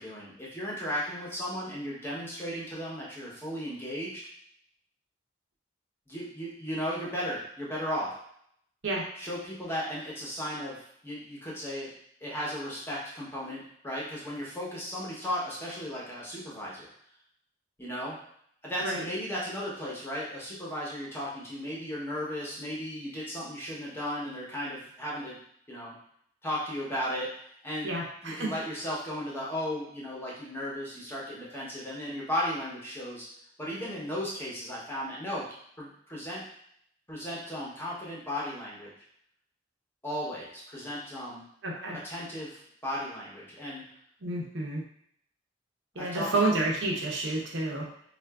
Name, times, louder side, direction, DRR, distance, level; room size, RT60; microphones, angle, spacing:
voice 1, 0.0-4.2 6.1-8.1 9.2-11.9 12.2-16.9 17.8-18.2 18.6-25.4 25.7-25.9 26.4-27.3 27.6-27.9 28.2-33.2 33.6-35.4 35.8-36.4 37.1-38.9 40.0-41.4 41.9-43.8 46.0-46.3, equal, 10° left, -6 dB, 0.9 m, -35 dB
voice 2, 27.8-28.5 41.6-42.0 44.2-44.8 45.9-47.8, right 2 dB, 80° right, -2 dB, 0.8 m, -29 dB
3.8 x 2.4 x 2.3 m, 0.68 s
head